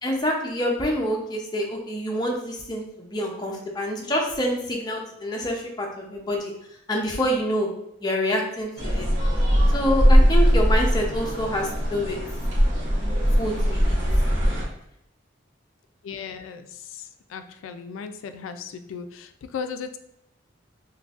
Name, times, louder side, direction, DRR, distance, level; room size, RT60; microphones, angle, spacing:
voice 1, 0.0-6.5 6.9-7.7 8.0-9.1 9.7-12.2 13.4-14.0, equal, 20° left, 0 dB, 0.5 m, -27 dB
sound 1, 8.8-14.6, equal, 80° right, 1.0 m, -20 dB
voice 2, 16.0-17.0 17.3-20.0, left 6 dB, 80° left, 8 dB, 0.3 m, -36 dB
3.7 x 2.6 x 2.4 m, 0.79 s
head